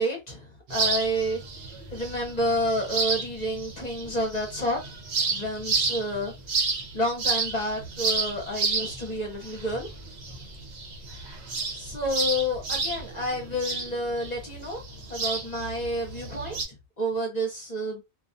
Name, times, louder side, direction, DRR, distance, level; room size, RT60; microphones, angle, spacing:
voice 1, 0.0-1.4 1.9-4.8 5.3-6.3 6.9-9.9 11.7-14.8 15.1-18.0, equal, 45° left, 0.8 m, -29 dB
sound 1, 0.7-16.6, right 4 dB, 85° right, 1.0 m, -31 dB
2.3 x 2.3 x 2.5 m
omnidirectional pair, 1.1 m